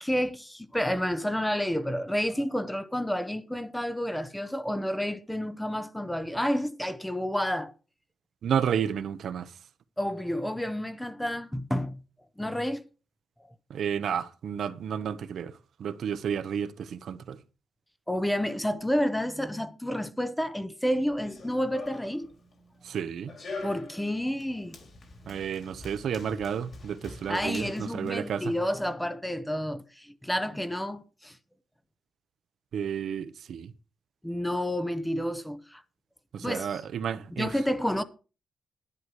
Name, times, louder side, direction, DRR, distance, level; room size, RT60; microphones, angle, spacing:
voice 1, 0.0-7.7 10.0-12.0 12.4-12.8 18.1-22.3 23.6-24.8 27.3-31.3 34.2-35.8 36.4-36.8 37.3-38.0, equal, 5° left, 0.7 m, -30 dB
voice 2, 8.4-9.5 13.7-15.5 15.8-17.4 22.8-23.3 25.3-28.4 32.7-33.7 36.3-37.5, right 8 dB, 65° right, 0.8 m, -31 dB
Run, 21.1-28.8, left 3 dB, 40° left, 3.1 m, -45 dB
11.0 x 11.0 x 4.8 m
wide cardioid pair, 165°, 0 cm